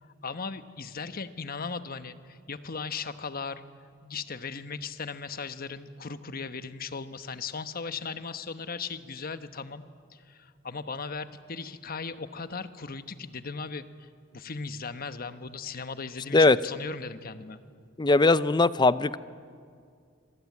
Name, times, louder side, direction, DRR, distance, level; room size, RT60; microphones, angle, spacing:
voice 1, 0.0-3.6 4.0-9.8 10.1-17.6, left 5 dB, 50° left, 11 dB, 1.2 m, -37 dB
voice 2, 18.0-19.2, left 3 dB, 20° left, 15 dB, 0.6 m, -20 dB
27.0 x 21.5 x 9.6 m, 2.2 s
head